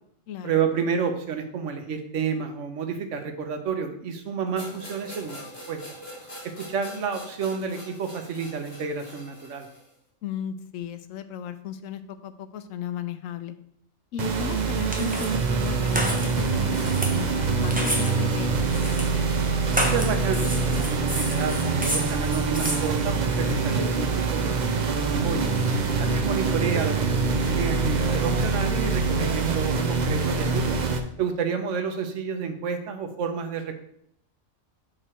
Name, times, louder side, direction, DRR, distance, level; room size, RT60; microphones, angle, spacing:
voice 1, 0.4-5.8 6.4-9.7 19.8-25.5 26.0-30.8 31.2-33.8, right 6 dB, 65° right, 6 dB, 1.2 m, -30 dB
sound 1, 4.6-9.9, equal, 50° left, 2.0 m, -43 dB
voice 2, 10.2-13.6 14.1-18.9 26.1-26.4, left 9 dB, 75° left, 11 dB, 1.0 m, -36 dB
sound 2, 14.2-31.0, right 4 dB, 45° right, 0.6 m, -25 dB
sound 3, 14.5-23.6, right 1 dB, 10° right, 0.8 m, -32 dB
6.5 x 5.1 x 4.4 m, 0.71 s
omnidirectional pair, 1.4 m